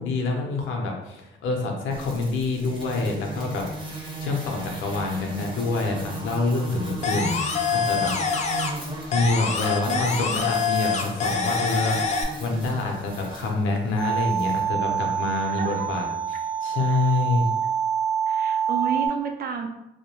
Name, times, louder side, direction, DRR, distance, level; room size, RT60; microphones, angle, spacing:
voice 1, 0.0-3.7 4.2-8.4 9.1-12.1 12.4-17.5, left 3 dB, 80° left, 2 dB, 0.6 m, -26 dB
sound 1, 1.9-14.6, right 2 dB, 25° right, 0.8 m, -37 dB
sound 2, 7.0-8.8 9.1-12.2, left 5 dB, 35° left, 0.4 m, -25 dB
voice 2, 9.9-10.4 15.4-15.9 16.9-17.0 18.3-19.7, right 6 dB, 50° right, 4 dB, 0.4 m, -32 dB
sound 3, 14.0-19.1, right 8 dB, 70° right, 0.8 m, -26 dB
2.3 x 2.1 x 2.9 m, 0.87 s
cardioid pair, 90°, 20 cm